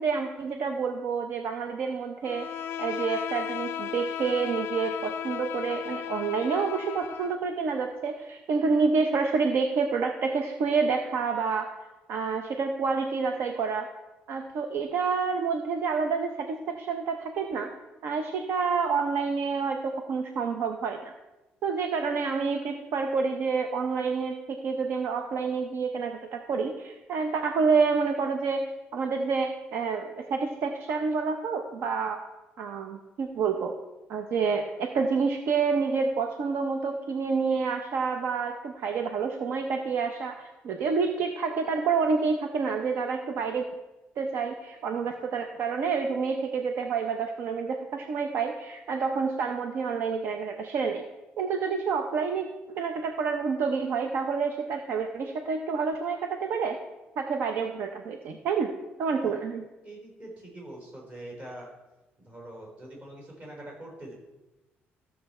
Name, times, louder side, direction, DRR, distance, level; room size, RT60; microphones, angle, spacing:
voice 1, 0.0-2.5 2.8-11.7 12.1-13.9 14.3-17.7 18.0-21.1 21.6-32.2 32.6-33.7 34.1-43.7 44.2-51.0 51.4-56.8 57.2-58.7 59.0-59.6, right 5 dB, 65° right, 5 dB, 0.8 m, -28 dB
Bowed string instrument, 2.2-7.4, left 9 dB, 65° left, 0.4 m, -35 dB
voice 2, 59.8-61.7 62.2-64.1, right 1 dB, 30° right, -2 dB, 3.9 m, -44 dB
14.0 x 6.8 x 4.3 m, 1.1 s
cardioid pair, 145°, 4 cm